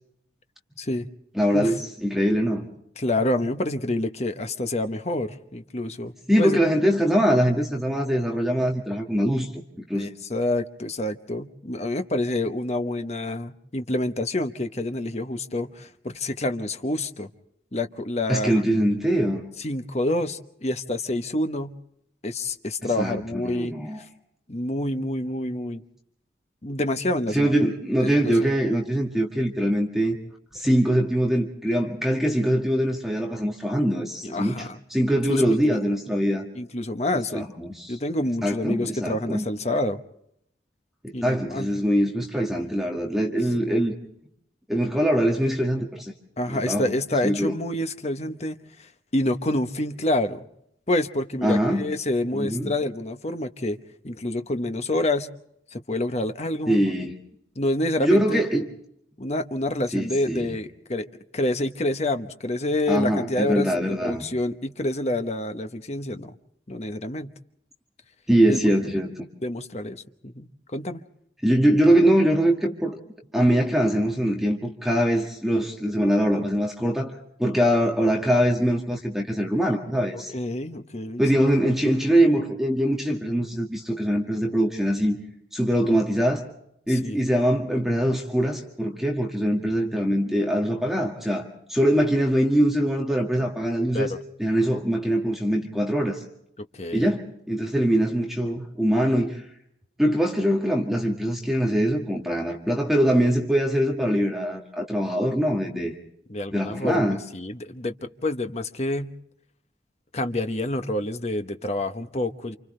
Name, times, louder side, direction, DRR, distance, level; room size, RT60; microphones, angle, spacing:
voice 1, 1.3-2.7 6.3-9.5 9.9-10.1 18.3-19.4 22.8-24.0 27.3-30.2 30.5-36.5 37.3-38.0 38.4-39.4 41.0-43.9 44.7-46.1 46.5-46.9 47.2-47.5 51.4-51.9 52.3-52.7 56.7-57.2 58.0-58.7 59.9-60.5 62.9-64.2 68.3-69.3 71.4-73.0 73.3-77.1 77.4-80.3 81.2-85.2 85.5-86.4 86.9-94.1 94.4-96.2 96.9-99.4 100.0-105.9 106.5-107.2, equal, ahead, 0 dB, 1.9 m, -23 dB
voice 2, 3.0-6.1 6.4-6.6 9.9-17.3 17.7-18.6 19.6-21.7 22.2-24.1 24.5-25.8 26.6-27.5 28.0-28.5 34.2-34.8 35.3-35.8 36.5-37.5 37.9-40.0 41.1-41.7 46.4-50.4 50.9-53.8 54.0-55.3 55.7-56.8 57.6-58.4 59.2-61.1 61.3-66.3 66.7-67.3 68.5-68.6 69.4-71.0 80.3-81.2 86.9-87.2 93.9-94.1 96.7-97.2 106.3-109.1 110.1-112.6, left 1 dB, 40° left, 8 dB, 1.1 m, -28 dB
29.0 x 28.0 x 3.3 m, 0.76 s
head